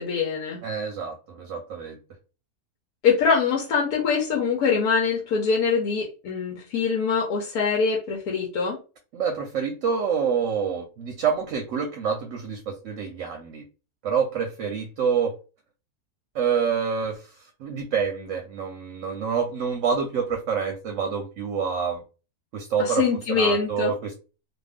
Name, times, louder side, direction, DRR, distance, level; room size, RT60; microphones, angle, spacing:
voice 1, 0.0-0.6 3.0-8.8 22.8-23.9, left 5 dB, 85° left, -1 dB, 1.3 m, -23 dB
voice 2, 0.6-2.0 9.1-13.6 14.0-15.3 16.3-22.0 22.5-24.1, right 6 dB, 65° right, 4 dB, 0.9 m, -27 dB
2.6 x 2.5 x 3.4 m, 0.33 s
omnidirectional pair, 1.5 m